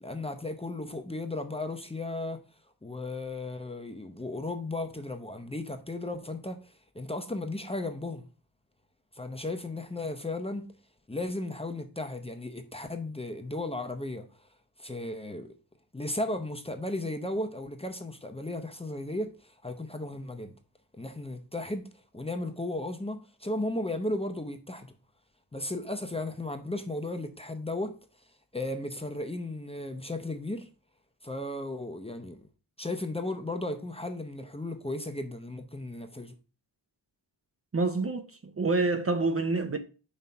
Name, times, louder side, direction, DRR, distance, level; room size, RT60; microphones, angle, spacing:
voice 1, 0.0-2.4 2.8-8.3 9.1-10.7 11.1-14.5 14.8-15.5 15.9-20.5 20.9-21.9 22.1-24.9 25.5-28.0 28.5-30.7 31.2-32.4 32.8-36.3, left 2 dB, 15° left, 0.7 m, -35 dB
voice 2, 37.7-39.8, right 3 dB, 30° right, 0.6 m, -27 dB
5.4 x 3.1 x 5.6 m
wide cardioid pair, 75°, 45 cm